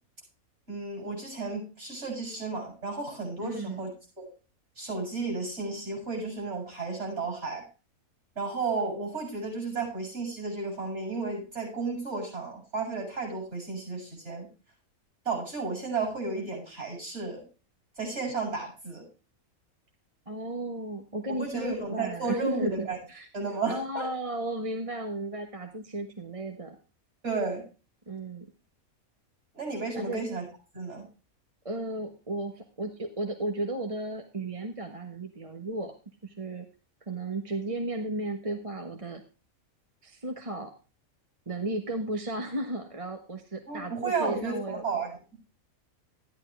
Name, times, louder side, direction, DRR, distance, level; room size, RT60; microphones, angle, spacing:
voice 1, 0.7-3.9 4.2-4.3 4.8-7.6 8.3-14.5 15.2-17.4 18.0-19.1 21.3-23.0 23.3-24.1 27.2-27.6 29.5-30.5 30.7-31.1 43.7-45.2, right 4 dB, 50° right, 0 dB, 8.5 m, -33 dB
voice 2, 3.4-3.8 20.3-23.3 23.7-26.8 28.1-28.4 29.9-30.2 31.6-35.9 36.2-36.6 37.1-39.2 40.0-40.7 41.5-44.8, right 1 dB, 25° right, 4 dB, 1.3 m, -34 dB
13.5 x 11.0 x 3.3 m, 0.34 s
omnidirectional pair, 1.5 m